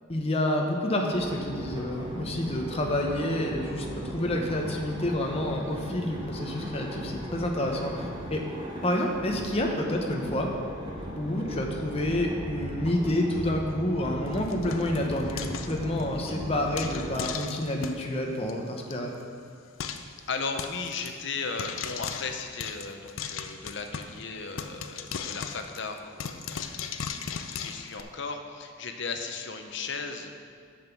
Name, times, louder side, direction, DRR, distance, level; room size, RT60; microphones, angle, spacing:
voice 1, 0.1-8.4 8.8-10.5 11.2-19.1, left 1 dB, 30° left, 1 dB, 1.0 m, -29 dB
sound 1, 1.1-17.3, equal, 25° right, 1.2 m, -38 dB
Frying (food), 14.3-16.3 16.8-18.1 18.5-18.6 18.8-18.9 19.2-19.3 19.8-20.1 20.6-21.1 21.6-24.2 24.6-28.0, left 7 dB, 85° left, 0.5 m, -37 dB
voice 2, 20.3-26.8 27.6-30.3, left 4 dB, 65° left, 4 dB, 0.8 m, -36 dB
7.3 x 7.1 x 6.0 m, 2.2 s
head